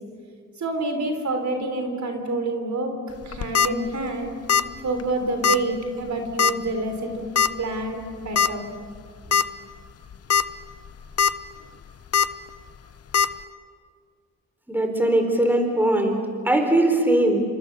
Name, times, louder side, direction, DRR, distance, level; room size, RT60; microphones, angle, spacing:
voice 1, 0.6-2.9 3.2-4.3 4.8-7.3 7.6-8.7, right 2 dB, 55° right, 5 dB, 3.7 m, -27 dB
sound 1, 3.2-3.7 4.5-4.7 5.0-5.1 5.4-5.6 6.4-6.7 7.4-7.5 8.4-8.5 8.9-9.0 9.3-9.4 10.1-10.4 10.8-11.3 12.1-12.3 13.1-13.3, left 7 dB, 45° left, 0.8 m, -19 dB
voice 2, 14.7-17.4, right 1 dB, 5° right, 4 dB, 4.1 m, -20 dB
28.5 x 26.0 x 6.9 m, 2.1 s
cardioid pair, 95°, 34 cm